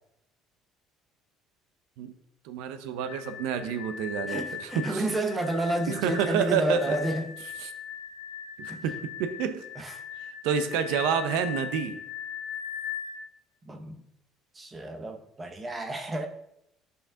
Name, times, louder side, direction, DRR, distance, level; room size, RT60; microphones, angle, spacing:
voice 1, 2.4-5.0 5.9-7.0 7.6-7.7 8.6-9.6 10.2-12.0, right 7 dB, 85° right, 0.8 m, -29 dB
sound 1, 3.0-13.2, left 8 dB, 50° left, 1.5 m, -39 dB
voice 2, 4.3-7.3 8.7-8.8 9.8-10.0 13.6-14.0 14.5-16.3, right 1 dB, 15° right, 0.7 m, -30 dB
13.0 x 5.5 x 3.7 m
cardioid pair, 180°, 0 cm